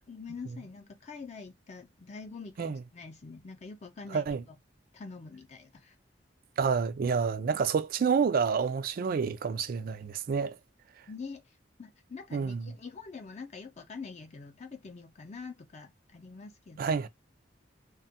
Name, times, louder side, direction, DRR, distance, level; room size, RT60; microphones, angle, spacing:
voice 1, 0.1-4.6 4.9-6.0 11.1-11.4 11.8-16.9, left 4 dB, 40° left, 0.5 m, -45 dB
voice 2, 4.1-4.4 6.6-10.6 12.3-12.7 16.8-17.1, right 6 dB, 55° right, 0.3 m, -28 dB
2.9 x 2.2 x 2.7 m
head